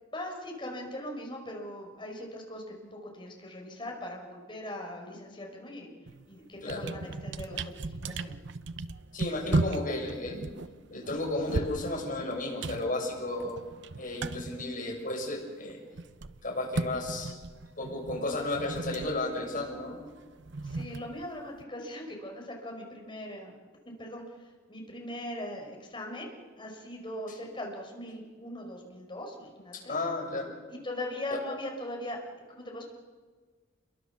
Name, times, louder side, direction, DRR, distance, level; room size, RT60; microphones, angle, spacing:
voice 1, 0.1-5.9 6.3-8.4 20.6-23.6 23.8-30.0 30.7-32.2 32.5-32.9, left 1 dB, 25° left, 1 dB, 5.5 m, -40 dB
sound 1, 6.1-6.3 6.6-15.4 15.7-21.6, right 2 dB, 60° right, 0.8 m, -36 dB
voice 2, 9.1-10.5 10.9-13.6 14.0-15.8 16.4-17.4 17.8-20.0 29.7-30.5, left 2 dB, 45° left, 0 dB, 7.3 m, -33 dB
29.0 x 23.0 x 7.1 m, 1.5 s
head